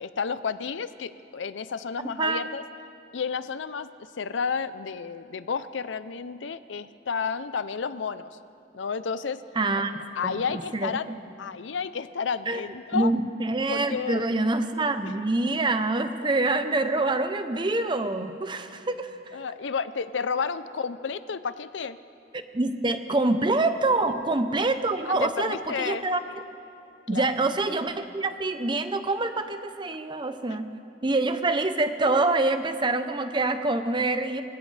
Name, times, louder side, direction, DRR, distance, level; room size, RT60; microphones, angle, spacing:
voice 1, 0.0-2.6 3.1-8.4 8.7-9.4 10.2-11.1 11.4-13.1 13.7-14.3 19.3-22.0 23.9-24.2 25.1-26.1 27.1-27.3 30.5-30.6, left 5 dB, 85° left, 14 dB, 0.6 m, -31 dB
voice 2, 9.6-10.9 12.5-12.6 12.9-19.1 22.5-26.2 27.1-30.7 31.0-34.4, right 2 dB, 25° right, 9 dB, 0.7 m, -26 dB
25.5 x 17.0 x 3.3 m, 2.6 s
head